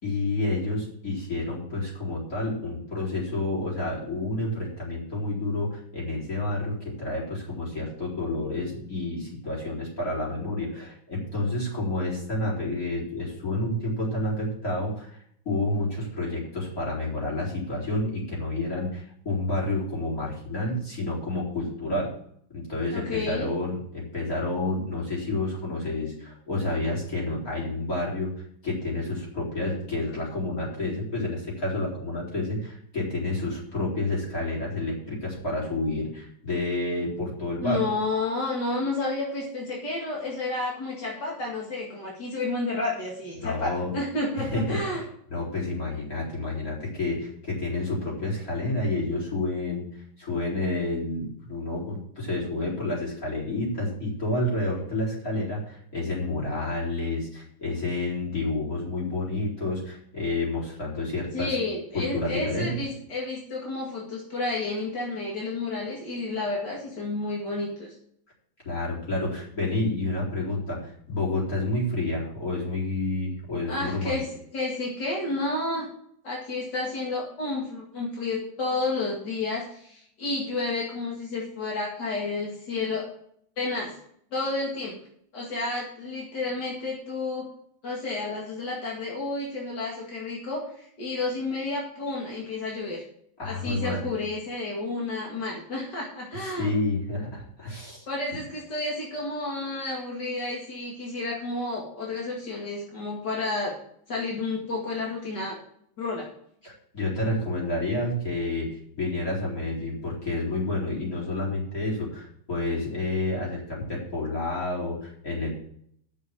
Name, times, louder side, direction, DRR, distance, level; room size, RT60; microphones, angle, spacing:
voice 1, 0.0-15.1 15.4-22.1 22.5-28.3 28.6-37.8 43.4-43.9 44.3-49.9 50.2-61.6 61.9-62.7 68.6-74.2 93.4-94.1 96.4-98.1 106.6-115.5, left 2 dB, 20° left, -3 dB, 4.1 m, -29 dB
voice 2, 22.9-23.5 37.6-45.0 61.3-67.9 73.7-74.3 74.5-75.9 76.2-83.0 83.6-83.9 84.3-84.9 85.3-87.4 87.8-93.0 93.4-96.7 98.0-103.7 104.1-105.6 106.0-106.3, left 2 dB, 40° left, -3 dB, 1.5 m, -31 dB
8.6 x 6.5 x 8.4 m, 0.67 s
omnidirectional pair, 5.2 m